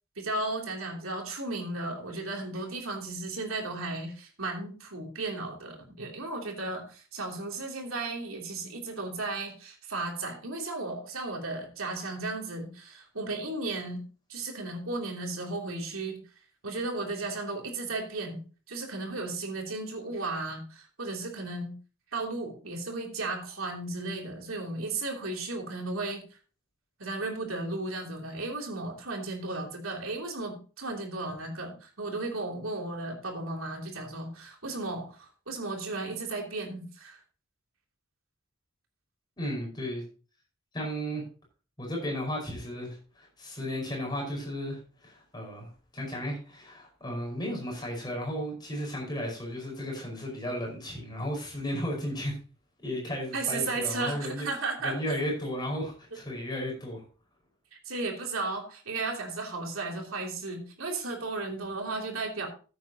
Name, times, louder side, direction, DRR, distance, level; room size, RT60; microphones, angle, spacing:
voice 1, 0.2-14.0 14.3-16.2 16.6-18.4 18.7-21.7 22.1-26.4 27.0-37.2 51.7-51.8 53.3-55.2 57.7-62.5, right 2 dB, 85° right, 1 dB, 3.0 m, -35 dB
voice 2, 39.4-40.0 40.7-41.2 41.8-52.4 52.8-54.5 54.8-57.0, equal, 20° left, -1 dB, 5.0 m, -34 dB
14.5 x 8.5 x 2.9 m, 0.36 s
head